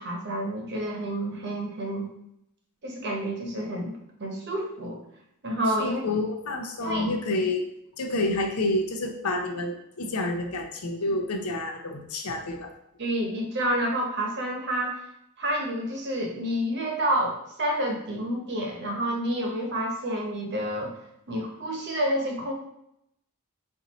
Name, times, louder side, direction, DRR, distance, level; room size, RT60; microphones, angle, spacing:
voice 1, 0.0-2.1 2.8-5.0 5.4-6.0 6.8-7.0 13.0-15.0 15.4-20.9 21.3-22.5, right 1 dB, 50° right, 1 dB, 0.9 m, -29 dB
voice 2, 5.8-7.7 8.0-12.7, left 2 dB, 85° left, 3 dB, 0.6 m, -29 dB
4.5 x 2.6 x 4.0 m, 0.78 s
head